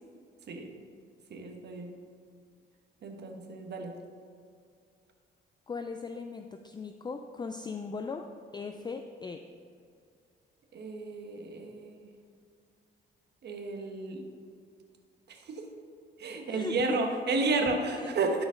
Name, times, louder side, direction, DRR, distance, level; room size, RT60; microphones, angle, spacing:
voice 1, 1.3-1.9 3.0-3.9 10.7-12.1 13.4-14.2 15.3-15.7 16.2-18.4, right 3 dB, 55° right, 3 dB, 1.2 m, -32 dB
voice 2, 5.7-8.3 8.5-9.4 16.5-17.1 17.9-18.1, left 4 dB, 20° left, 6 dB, 0.4 m, -38 dB
12.0 x 5.1 x 3.8 m, 2.3 s
cardioid pair, 90°, 20 cm